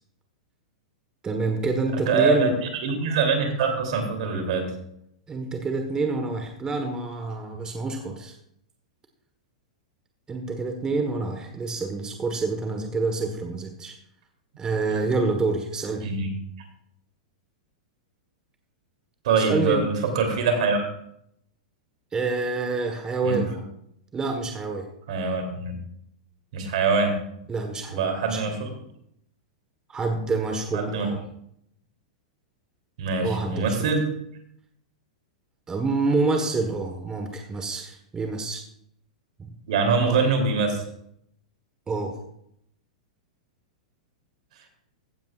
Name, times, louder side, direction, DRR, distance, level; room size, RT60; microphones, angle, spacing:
voice 1, 1.2-2.5 5.3-8.3 10.3-13.9 14.6-16.1 19.3-19.8 22.1-23.6 24.1-24.9 27.5-28.4 29.9-31.2 33.2-33.9 35.7-38.6 39.4-39.5 41.9-42.2, right 3 dB, 20° right, 4 dB, 1.4 m, -27 dB
voice 2, 2.1-2.5 2.8-4.7 14.9-15.0 16.0-16.3 19.2-20.8 23.2-23.4 25.1-25.7 26.5-27.2 27.9-28.7 30.7-31.1 33.0-34.1 39.7-40.8, right 4 dB, 65° right, 3 dB, 3.1 m, -24 dB
15.5 x 9.2 x 2.5 m, 0.74 s
hypercardioid pair, 115°, 4 cm